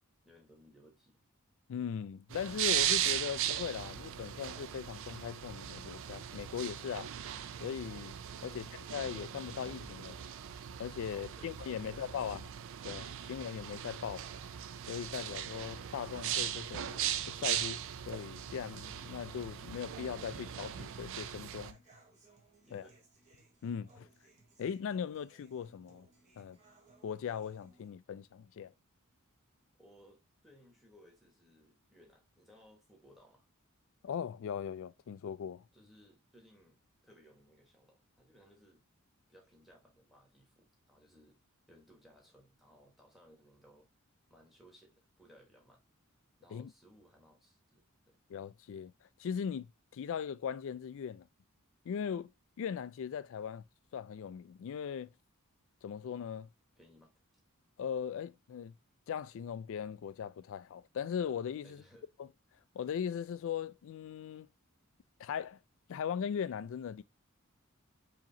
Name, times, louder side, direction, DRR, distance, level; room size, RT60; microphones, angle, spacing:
voice 1, 0.2-1.2 8.4-8.8 11.1-11.5 11.8-12.3 22.6-23.0 29.8-33.4 35.7-38.8 39.3-41.4 41.7-43.9 44.3-45.8 46.4-48.2 56.7-57.1 61.6-62.1, equal, ahead, 1.3 m, -62 dB
voice 2, 1.7-7.1 7.6-8.2 8.4-8.7 8.9-10.2 10.8-12.5 12.8-14.3 14.9-17.8 18.1-21.8 22.7-22.9 23.6-24.1 24.6-26.1 26.4-26.6 27.0-28.7 34.0-35.6 46.5-46.7 48.3-48.9 49.2-51.3 51.9-52.3 52.6-53.6 53.9-55.1 55.8-56.5 57.8-58.7 59.1-61.8 62.2-62.3 62.7-64.5 65.2-65.6 65.9-67.0, left 7 dB, 60° left, 0.3 m, -39 dB
sound 1, 2.3-21.7, right 10 dB, 60° right, 0.4 m, -38 dB
Human voice / Acoustic guitar, 19.9-27.9, right 2 dB, 35° right, 1.0 m, -65 dB
4.9 x 2.9 x 2.7 m
head